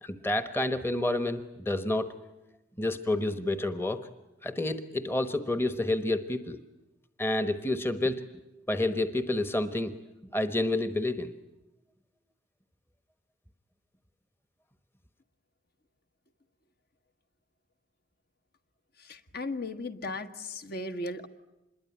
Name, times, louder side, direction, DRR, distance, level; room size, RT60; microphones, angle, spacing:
voice 1, 0.0-2.2 2.8-4.1 4.4-6.6 7.2-8.2 8.7-9.9 10.3-11.3, left 2 dB, 10° left, 10 dB, 1.1 m, -29 dB
voice 2, 19.0-21.3, left 2 dB, 50° left, 7 dB, 1.5 m, -36 dB
26.5 x 22.0 x 10.0 m, 0.98 s
head